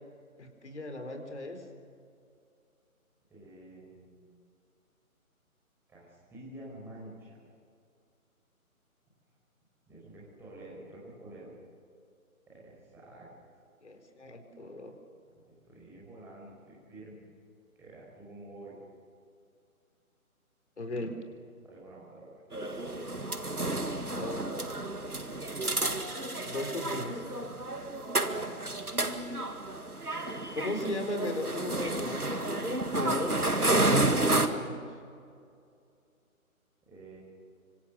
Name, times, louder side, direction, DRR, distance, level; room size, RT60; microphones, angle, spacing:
voice 1, 0.4-1.6 13.8-15.0 20.8-21.2 24.1-24.5 26.4-27.2 30.5-33.5 34.1-34.9, left 2 dB, 50° left, 6 dB, 4.1 m, -37 dB
voice 2, 3.3-4.2 5.9-7.3 9.9-11.5 12.5-13.3 15.4-17.2 17.8-18.7 21.6-22.4 28.1-28.7 36.9-37.2, right 1 dB, 5° right, -6 dB, 5.8 m, -49 dB
sound 1, 22.5-34.5, right 2 dB, 90° right, 2.1 m, -31 dB
25.5 x 25.5 x 6.8 m, 2.4 s
figure-of-eight pair, 150°, 43 cm